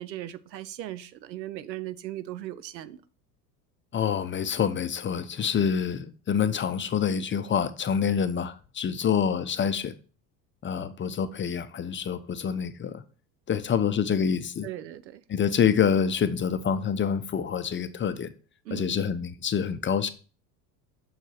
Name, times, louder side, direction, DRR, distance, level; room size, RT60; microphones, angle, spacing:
voice 1, 0.0-3.0 14.6-15.2 18.6-19.0, right 14 dB, 90° right, 0.6 m, -38 dB
voice 2, 3.9-9.9 10.6-13.0 13.5-14.7 15.3-18.3 18.7-20.1, left 7 dB, 25° left, 0.6 m, -26 dB
6.6 x 4.5 x 4.4 m
hypercardioid pair, 80°, 50 cm